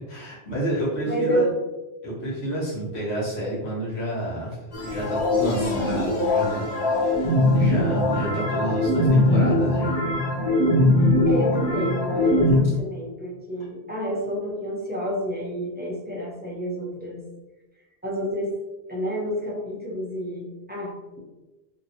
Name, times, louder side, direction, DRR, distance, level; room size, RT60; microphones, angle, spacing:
voice 1, 0.1-1.5 2.0-10.0, right 1 dB, 85° left, -6 dB, 1.4 m, -30 dB
voice 2, 1.0-1.5 11.3-17.2 18.0-18.5 18.9-21.2, equal, 10° right, -5 dB, 0.6 m, -29 dB
sound 1, 4.7-12.6, left 1 dB, 35° left, 1.3 m, -21 dB
2.8 x 2.8 x 2.7 m, 1.1 s
omnidirectional pair, 1.1 m